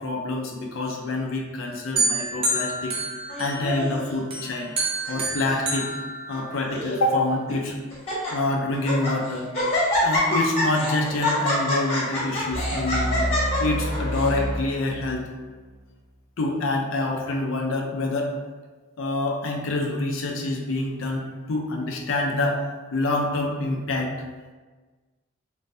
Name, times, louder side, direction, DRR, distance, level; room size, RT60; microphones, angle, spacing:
voice 1, 0.0-3.0 3.4-4.7 5.1-5.9 6.3-7.8 8.3-9.5 10.0-13.2 13.6-15.3 16.4-18.3 19.0-22.6 22.9-24.1, left 2 dB, 70° left, 1 dB, 0.5 m, -26 dB
sound 1, 2.0-3.9 4.3-6.8, right 2 dB, 25° right, 0.5 m, -28 dB
Laughter, 3.3-4.1 4.8-5.2 5.4-5.5 6.3-6.9 7.5-7.6 7.9-8.3 8.7-9.1 9.5-14.3, left 1 dB, 30° left, 1.0 m, -26 dB
sound 2, 12.5-15.8, equal, 85° right, 1.3 m, -29 dB
3.2 x 2.5 x 2.6 m, 1.3 s
head